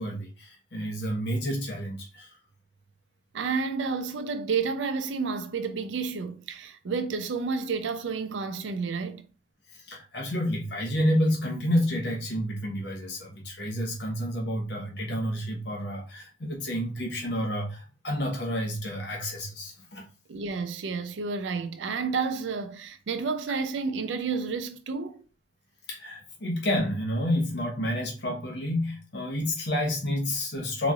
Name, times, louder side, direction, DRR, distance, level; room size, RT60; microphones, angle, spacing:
voice 1, 0.0-2.3 9.7-20.1 25.9-30.9, equal, 65° left, 0.9 m, -29 dB
voice 2, 3.3-9.3 20.3-25.2, right 5 dB, 80° right, 0.4 m, -30 dB
3.9 x 3.0 x 2.4 m
head